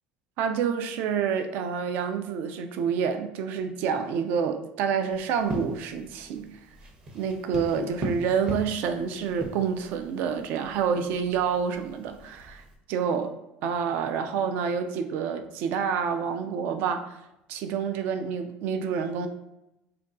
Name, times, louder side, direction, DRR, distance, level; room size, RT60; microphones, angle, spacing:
voice 1, 0.4-6.5 7.1-13.3 13.6-17.2 17.5-19.3, right 6 dB, 65° right, 8 dB, 0.3 m, -28 dB
sound 1, 5.1-12.8, right 1 dB, 30° right, 0.7 m, -40 dB
2.5 x 2.2 x 3.6 m, 0.89 s
supercardioid pair, 115°, 3 cm